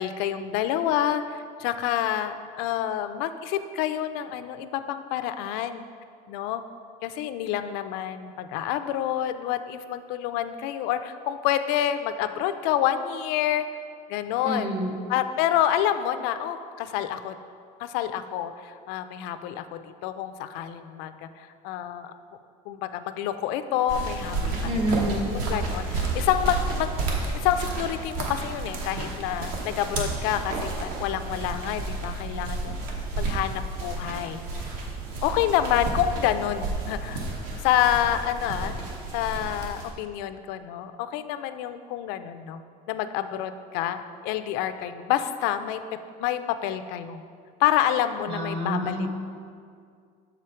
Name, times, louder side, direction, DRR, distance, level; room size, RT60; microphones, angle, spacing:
voice 1, 0.0-5.8 6.3-6.6 7.0-13.7 14.1-14.8 15.1-17.4 17.8-22.1 22.7-24.5 25.3-26.9 27.3-32.8 33.2-34.4 35.2-37.2 37.6-38.7 39.1-42.6 42.9-45.8 46.2-47.2 47.6-49.1, left 11 dB, 80° left, 9 dB, 0.4 m, -28 dB
voice 2, 14.4-15.0 24.6-25.3 48.3-49.1, right 1 dB, 35° right, 0 dB, 1.0 m, -28 dB
sound 1, 23.9-39.9, right 3 dB, 60° right, 1.0 m, -31 dB
6.7 x 4.9 x 4.4 m, 2.2 s
cardioid pair, 170°, 17 cm